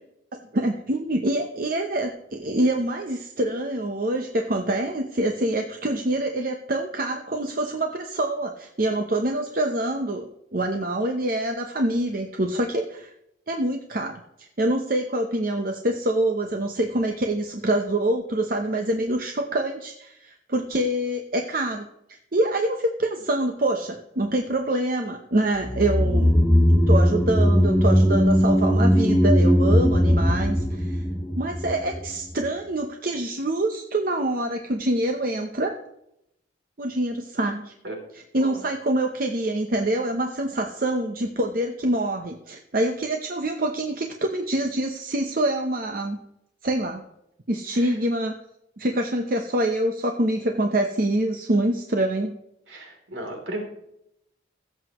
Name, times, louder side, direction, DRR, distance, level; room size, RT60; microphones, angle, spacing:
voice 1, 0.5-13.1 13.5-26.4 26.9-31.0 31.4-35.7 36.8-37.7 38.1-46.2 46.6-47.0 47.5-48.3 48.8-52.4, right 1 dB, 50° right, 4 dB, 0.8 m, -25 dB
sound 1, 25.6-32.0 32.3-32.4, equal, 15° left, 1.7 m, -19 dB
voice 2, 52.7-53.6, right 1 dB, 70° right, 1 dB, 3.3 m, -34 dB
16.0 x 7.8 x 3.1 m, 0.79 s
head